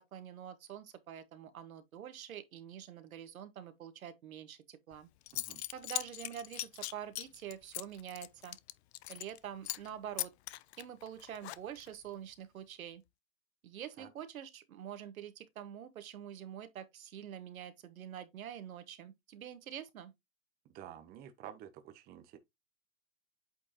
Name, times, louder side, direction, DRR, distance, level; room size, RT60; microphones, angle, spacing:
voice 1, 0.0-5.1 5.7-8.6 9.1-10.3 10.8-13.0 13.6-20.1, right 10 dB, 85° right, 1.6 m, -46 dB
Zipper (clothing) / Coin (dropping), 4.9-5.0 5.3-9.4 9.6-9.9 10.2-11.9, left 16 dB, 50° left, 0.5 m, -40 dB
voice 2, 5.3-5.6 14.0-14.1 20.6-22.4, right 10 dB, 20° right, 0.8 m, -50 dB
8.5 x 4.5 x 2.9 m
hypercardioid pair, 145°, 41 cm